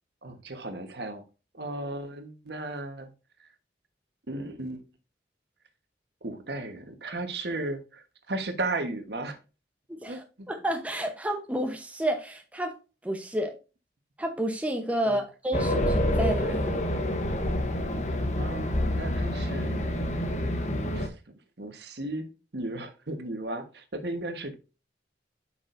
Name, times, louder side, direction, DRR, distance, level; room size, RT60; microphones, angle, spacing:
voice 1, 0.2-1.2 1.5-3.1 3.4-3.5 4.3-4.8 6.2-9.4 10.1-10.5 15.0-15.2 18.4-19.9 20.9-21.1 21.6-24.5, right 2 dB, 70° right, 1.3 m, -35 dB
voice 2, 9.9-12.8 13.0-13.5 14.2-16.8, equal, 10° right, 0.9 m, -30 dB
Race car auto racing, 15.5-21.1, left 1 dB, 40° left, 0.9 m, -27 dB
8.6 x 6.1 x 2.6 m
head